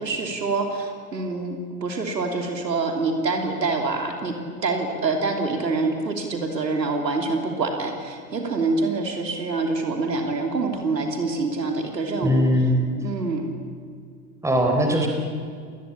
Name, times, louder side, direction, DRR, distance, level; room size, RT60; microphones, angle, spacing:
voice 1, 0.0-4.3 4.6-12.7 13.0-13.5, right 3 dB, 85° right, 4 dB, 3.2 m, -26 dB
voice 2, 12.2-12.9 14.4-15.1, equal, 5° right, 2 dB, 4.0 m, -20 dB
29.0 x 20.0 x 8.6 m, 2.2 s
figure-of-eight pair, 85°, 49 cm